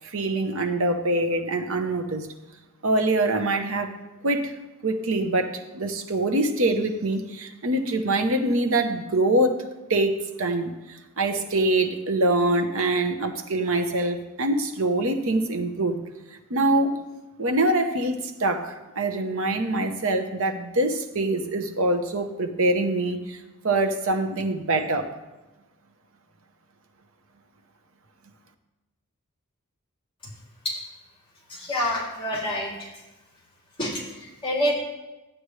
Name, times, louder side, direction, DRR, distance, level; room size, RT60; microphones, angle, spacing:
voice 1, 0.0-2.3 2.8-4.0 4.2-4.5 4.8-9.6 9.9-16.0 16.5-17.0 17.4-23.4 23.6-25.1, right 2 dB, 65° right, 7 dB, 0.9 m, -24 dB
voice 2, 31.5-32.9 33.8-34.7, left 1 dB, 25° left, -6 dB, 2.7 m, -27 dB
12.5 x 8.8 x 3.2 m, 1.1 s
head